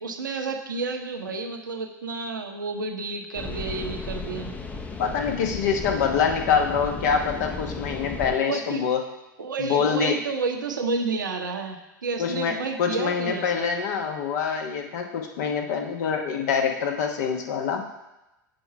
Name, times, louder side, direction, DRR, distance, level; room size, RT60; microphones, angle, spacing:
voice 1, 0.0-4.5 8.5-8.9 9.4-13.7, right 4 dB, 75° right, 4 dB, 0.8 m, -30 dB
sound 1, 3.3-8.3, left 4 dB, 15° left, 0.6 m, -35 dB
voice 2, 5.0-9.0 9.6-10.1 12.2-17.8, left 6 dB, 55° left, 3 dB, 1.1 m, -25 dB
6.8 x 4.6 x 5.7 m, 0.95 s
figure-of-eight pair, 85°, 11 cm